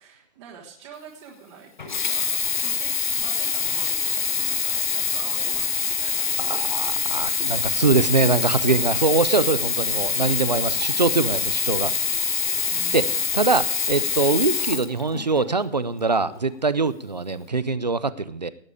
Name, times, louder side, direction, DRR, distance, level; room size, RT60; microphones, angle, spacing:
voice 1, 0.0-6.8 12.7-13.1, right 6 dB, 20° right, -6 dB, 1.6 m, -45 dB
Sink (filling or washing), 1.8-15.6 16.3-16.4, left 6 dB, 40° left, 0.5 m, -25 dB
voice 2, 6.4-11.9 12.9-18.5, right 4 dB, 35° right, 15 dB, 0.4 m, -23 dB
18.5 x 7.4 x 4.9 m, 0.64 s
hypercardioid pair, 180°, 39 cm